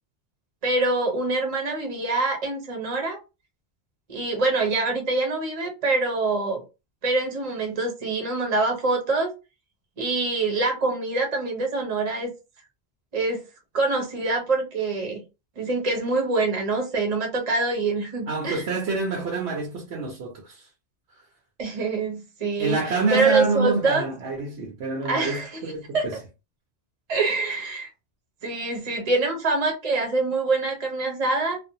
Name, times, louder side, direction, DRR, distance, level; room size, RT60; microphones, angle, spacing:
voice 1, 0.6-3.2 4.1-6.6 7.0-9.3 10.0-12.3 13.1-13.4 13.7-15.2 15.6-18.6 21.6-22.8 23.1-24.1 25.0-25.6 25.9-26.1 27.1-27.9 28.4-31.6, right 3 dB, 40° right, 0.7 m, -25 dB
voice 2, 18.3-20.7 22.6-26.2, right 3 dB, 85° right, 1.0 m, -27 dB
2.5 x 2.1 x 2.6 m
omnidirectional pair, 1.1 m